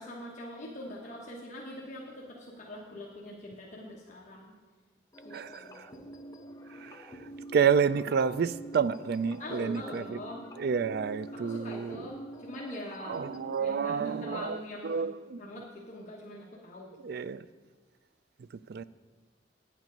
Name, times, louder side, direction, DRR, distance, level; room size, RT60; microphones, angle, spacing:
voice 1, 0.0-4.5 5.2-6.0 9.4-10.4 11.3-13.2 13.6-15.1 15.4-16.9, left 1 dB, 40° left, 1.2 m, -43 dB
sound 1, 5.1-13.6, right 1 dB, 20° left, 0.7 m, -47 dB
voice 2, 5.3-5.8 6.8-7.0 7.5-10.2 10.6-12.0 13.0-15.4 17.0-17.4 18.7-18.8, right 6 dB, 55° right, 0.4 m, -29 dB
9.3 x 9.1 x 5.3 m
head